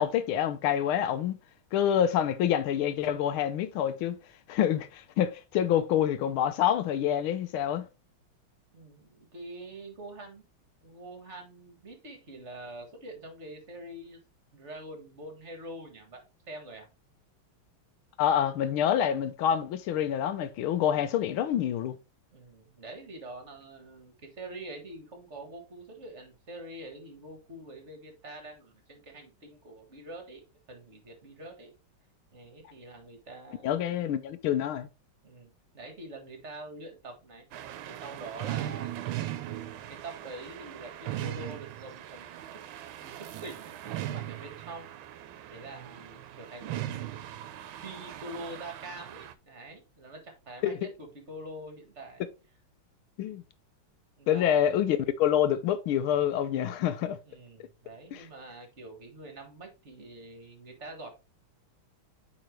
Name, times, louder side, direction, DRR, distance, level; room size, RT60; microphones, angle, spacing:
voice 1, 0.0-1.4 1.7-4.2 4.5-7.9 18.2-22.0 33.6-34.9 50.6-50.8 53.2-53.4 54.3-57.2 58.1-58.3, left 10 dB, 80° left, 1.5 m, -27 dB
voice 2, 8.7-10.4 10.8-14.2 14.5-16.2 16.5-16.9 22.3-30.4 30.7-31.7 32.3-34.0 35.2-39.4 39.9-42.6 43.0-44.9 45.5-46.8 47.8-52.3 54.2-54.7 57.3-61.1, right 1 dB, 35° right, 1.7 m, -45 dB
sound 1, 37.5-49.3, right 13 dB, 80° right, 1.4 m, -39 dB
8.7 x 4.1 x 3.2 m
omnidirectional pair, 2.3 m